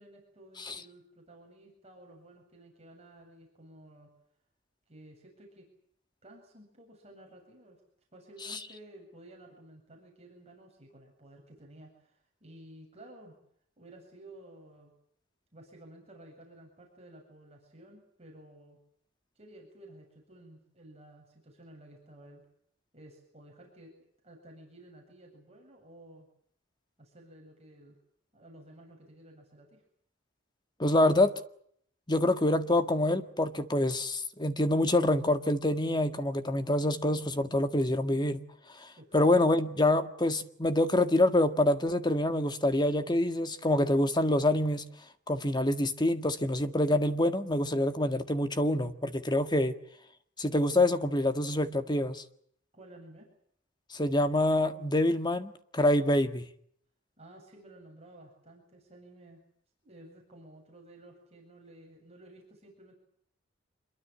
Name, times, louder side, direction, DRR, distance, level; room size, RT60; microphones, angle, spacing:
voice 1, 0.0-4.1 4.9-5.7 6.2-7.8 8.1-13.4 13.8-14.9 15.5-18.8 19.4-22.4 22.9-23.9 24.2-26.3 27.0-28.0 28.3-29.8 38.9-39.6 52.7-53.3 57.2-59.4 59.8-62.9, right 1 dB, 30° right, 7.9 m, -53 dB
voice 2, 30.8-31.3 32.1-38.4 38.8-38.9 39.1-44.9 45.3-49.7 50.4-52.2 53.9-56.4, left 1 dB, 20° left, 1.8 m, -26 dB
26.5 x 23.0 x 7.5 m
head